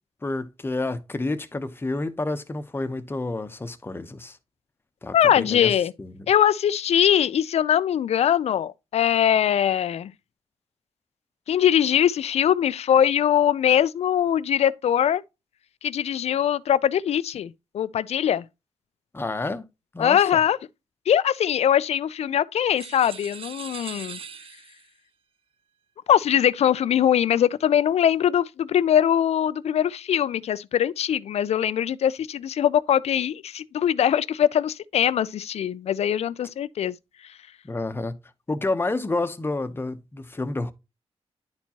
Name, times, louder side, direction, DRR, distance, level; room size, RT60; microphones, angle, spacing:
voice 1, 0.2-4.4 5.0-5.7 6.0-6.2 19.1-19.6 19.9-20.2 37.6-38.2 38.5-40.7, left 2 dB, 20° left, 0.8 m, -29 dB
voice 2, 5.1-5.9 6.3-10.1 11.5-15.2 15.8-18.5 20.0-20.6 21.1-24.2 26.1-36.9, left 9 dB, 75° left, 0.4 m, -22 dB
sound 1, 22.8-24.9, right 6 dB, 55° right, 0.6 m, -40 dB
10.5 x 4.5 x 2.8 m
wide cardioid pair, 100°, 11 cm